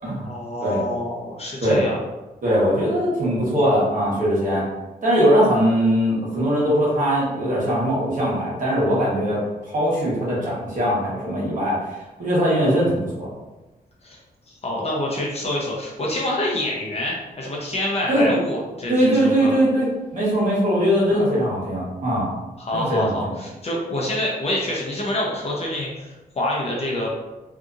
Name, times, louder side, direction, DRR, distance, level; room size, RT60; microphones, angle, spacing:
voice 1, 0.2-2.0 14.0-14.2 14.5-19.5 21.1-21.3 22.6-27.1, left 1 dB, 40° left, -3 dB, 0.6 m, -27 dB
voice 2, 2.4-4.7 5.0-11.8 12.2-13.3 18.1-18.3 18.9-19.9 20.1-22.3 22.7-23.3, equal, 50° right, -6 dB, 1.1 m, -20 dB
2.7 x 2.5 x 2.4 m, 1.1 s
wide cardioid pair, 165°, 16 cm